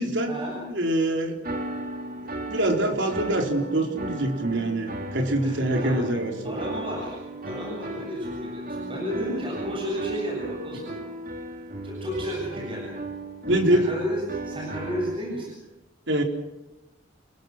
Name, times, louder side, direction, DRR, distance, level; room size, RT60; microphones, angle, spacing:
voice 1, 0.0-1.4 2.5-6.7 13.5-13.9 16.1-16.2, right 1 dB, 70° right, 2 dB, 4.4 m, -25 dB
sound 1, 1.4-15.2, right 2 dB, 50° right, 3.2 m, -36 dB
voice 2, 5.4-5.9 6.4-7.2 7.4-11.0 11.8-13.0 13.7-15.6, equal, 30° right, -2 dB, 7.4 m, -32 dB
29.0 x 22.5 x 6.3 m, 0.98 s
head